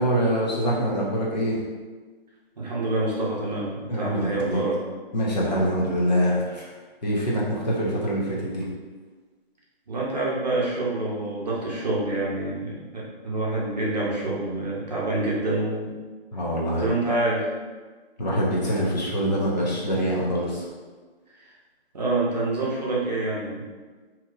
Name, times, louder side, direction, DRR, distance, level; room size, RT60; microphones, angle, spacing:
voice 1, 0.0-1.6 3.9-4.6 5.1-6.7 7.0-8.7 16.3-16.8 18.2-20.7, equal, 45° left, -5 dB, 0.8 m, -24 dB
voice 2, 2.6-4.8 9.9-15.9 16.8-17.5 21.4-21.5 21.9-23.6, right 2 dB, 40° right, -5 dB, 0.7 m, -27 dB
2.8 x 2.1 x 3.7 m, 1.4 s
hypercardioid pair, 170°, 31 cm